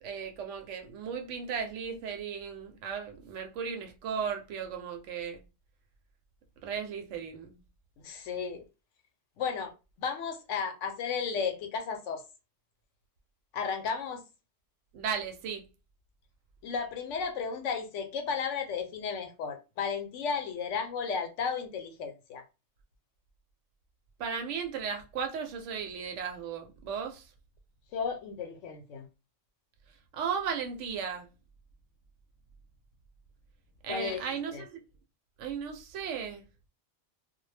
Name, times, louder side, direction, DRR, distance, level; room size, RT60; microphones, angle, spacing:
voice 1, 0.0-5.4 6.6-7.6 14.9-15.6 24.2-27.2 30.1-31.3 33.8-34.8 35.4-36.4, right 6 dB, 80° right, 0.9 m, -36 dB
voice 2, 8.0-8.6 9.4-9.7 10.0-12.2 13.5-14.2 16.6-22.4 27.9-29.1 33.9-34.2 34.5-34.6, left 6 dB, 85° left, 0.9 m, -34 dB
2.2 x 2.1 x 3.2 m
omnidirectional pair, 1.2 m